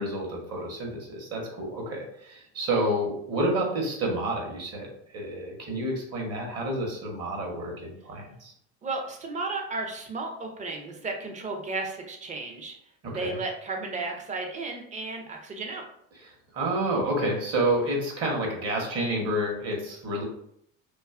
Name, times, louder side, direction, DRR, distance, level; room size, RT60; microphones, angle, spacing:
voice 1, 0.0-4.9 5.1-8.5 13.0-13.4 16.5-20.2, right 1 dB, 40° right, 0 dB, 0.8 m, -29 dB
voice 2, 8.8-12.8 13.1-15.8, right 3 dB, 20° right, 3 dB, 0.4 m, -34 dB
2.5 x 2.3 x 2.4 m, 0.70 s
supercardioid pair, 105°, 38 cm